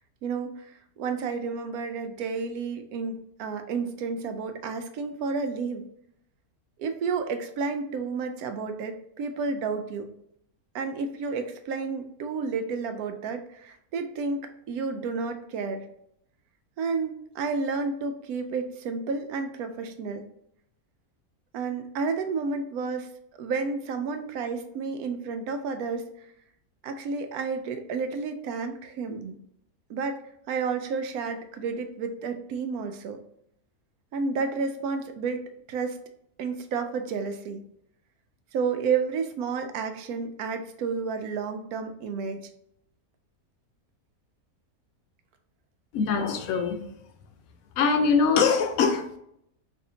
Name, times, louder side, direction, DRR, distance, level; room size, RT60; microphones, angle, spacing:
voice 1, 0.2-5.8 6.8-10.1 10.7-15.9 16.8-20.3 21.5-23.1 23.4-26.1 26.8-29.4 29.9-30.2 30.5-33.2 34.1-36.0 36.4-37.6 38.5-42.5, right 5 dB, 80° right, 7 dB, 1.0 m, -31 dB
voice 2, 45.9-46.8 47.8-49.2, left 5 dB, 70° left, 6 dB, 1.0 m, -23 dB
4.3 x 2.7 x 2.7 m, 0.73 s
omnidirectional pair, 1.6 m